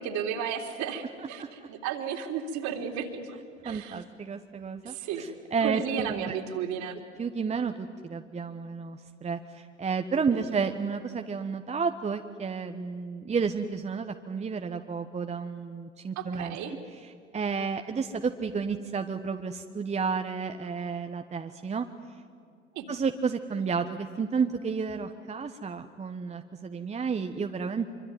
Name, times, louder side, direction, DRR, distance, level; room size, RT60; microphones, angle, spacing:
voice 1, 0.0-3.4 3.6-4.0 4.8-5.2 5.6-7.0 10.3-10.5 16.1-16.7 22.7-22.9, right 7 dB, 50° right, 5 dB, 3.3 m, -33 dB
voice 2, 3.6-6.4 7.2-16.5 17.3-21.9 22.9-27.9, right 5 dB, 20° right, 7 dB, 1.1 m, -31 dB
25.5 x 24.5 x 9.5 m, 2.2 s
figure-of-eight pair, 75°, 37 cm